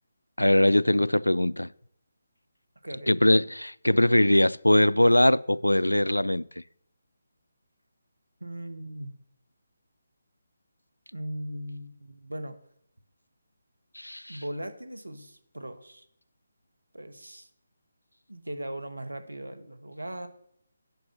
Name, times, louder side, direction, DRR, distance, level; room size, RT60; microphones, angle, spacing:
voice 1, 0.4-1.7 3.1-6.5 14.0-14.4, left 1 dB, 90° left, 0.3 m, -21 dB
voice 2, 2.8-3.2 8.4-9.1 11.1-12.6 14.3-16.1 16.9-17.5 18.3-20.3, right 1 dB, 85° right, 1.3 m, -38 dB
9.5 x 5.5 x 7.4 m
figure-of-eight pair, 150°, 0 cm